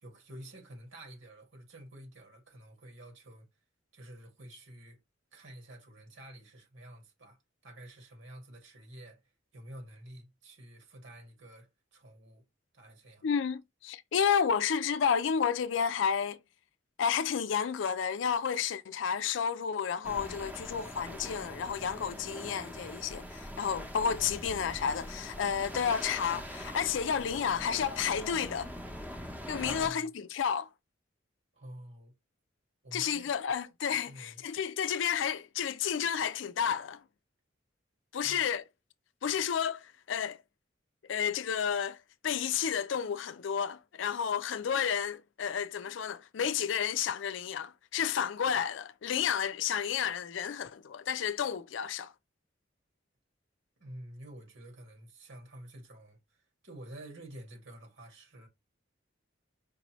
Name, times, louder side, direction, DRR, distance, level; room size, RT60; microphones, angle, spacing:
voice 1, 0.0-3.5 3.9-5.0 5.3-7.4 7.6-9.2 9.5-12.4 12.7-13.3 29.6-30.1 31.5-32.1 32.8-33.3 34.1-34.4 38.2-38.5 53.8-58.5, right 1 dB, 75° right, 2.1 m, -49 dB
voice 2, 13.2-16.4 17.0-28.7 29.5-30.7 32.9-37.0 38.1-38.6 39.2-40.4 41.1-52.1, left 7 dB, 70° left, 0.4 m, -31 dB
sound 1, 20.0-29.9, equal, 10° right, 0.9 m, -43 dB
5.1 x 2.7 x 3.0 m
head